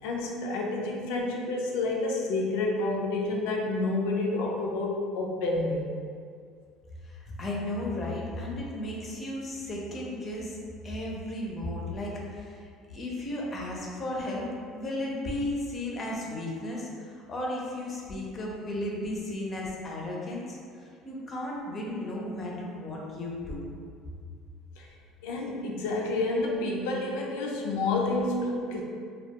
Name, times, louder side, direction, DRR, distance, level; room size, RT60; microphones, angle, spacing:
voice 1, 0.0-5.9 24.8-24.9 25.2-28.8, left 2 dB, 85° left, -1 dB, 0.4 m, -29 dB
voice 2, 7.0-10.6 10.8-23.7, left 1 dB, 30° left, -3 dB, 0.5 m, -34 dB
2.2 x 2.2 x 2.8 m, 2.2 s
cardioid pair, 130°, 0 cm